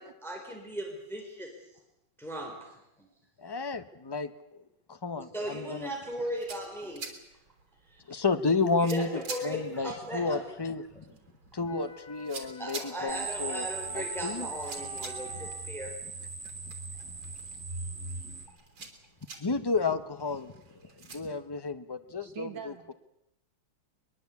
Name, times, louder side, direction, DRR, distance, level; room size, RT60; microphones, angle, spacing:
voice 1, 0.0-1.5 2.2-3.1 5.3-7.1 7.9-8.2 8.8-10.6 12.6-15.9, right 1 dB, ahead, 0 dB, 4.0 m, -38 dB
voice 2, 3.4-4.3 4.9-5.9 8.1-9.1 9.4-10.8 11.5-13.6 13.9-14.5 19.4-20.5 21.1-22.7, left 4 dB, 30° left, 10 dB, 0.4 m, -31 dB
sound 1, 6.1-21.2, right 4 dB, 85° right, 4.3 m, -48 dB
sound 2, 11.7-15.6, left 2 dB, 80° left, 5.6 m, -47 dB
sound 3, 13.1-18.5, right 3 dB, 35° right, 2.2 m, -38 dB
voice 3, 22.2-22.9, right 8 dB, 65° right, 8 dB, 1.9 m, -43 dB
22.5 x 21.5 x 8.4 m, 0.85 s
omnidirectional pair, 2.2 m